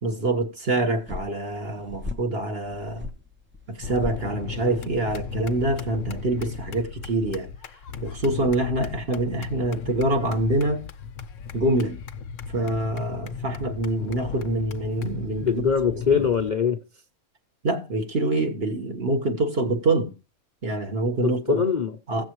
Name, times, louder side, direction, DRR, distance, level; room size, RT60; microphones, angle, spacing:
voice 1, 0.0-3.1 3.7-7.5 8.0-10.8 11.5-12.0 12.5-15.6 16.1-16.2 17.6-20.1 20.6-21.7 22.1-22.2, right 2 dB, 45° right, 1.6 m, -25 dB
sound 1, 0.8-6.2, left 3 dB, 15° right, 0.4 m, -39 dB
sound 2, 3.8-16.5, left 6 dB, 65° left, 1.0 m, -36 dB
voice 2, 15.4-16.8 21.2-22.0, left 6 dB, 40° left, 0.7 m, -23 dB
16.0 x 7.0 x 3.1 m
omnidirectional pair, 1.5 m